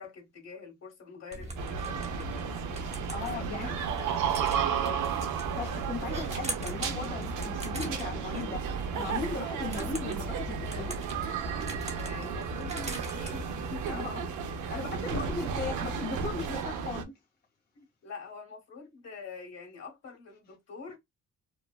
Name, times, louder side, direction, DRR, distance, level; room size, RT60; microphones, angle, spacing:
voice 1, 0.0-2.5 3.2-4.2 4.8-5.1 12.0-14.0 15.1-15.3 17.7-21.0, left 5 dB, 55° left, 1.5 m, -45 dB
sound 1, 1.3-14.0, right 1 dB, 20° right, 0.8 m, -41 dB
sound 2, 1.6-17.0, right 6 dB, 80° right, 0.6 m, -33 dB
voice 2, 2.7-3.7 5.5-11.0 13.9-14.2 14.7-17.1, left 4 dB, 35° left, 0.8 m, -37 dB
3.1 x 2.1 x 2.3 m
cardioid pair, 90°, 30 cm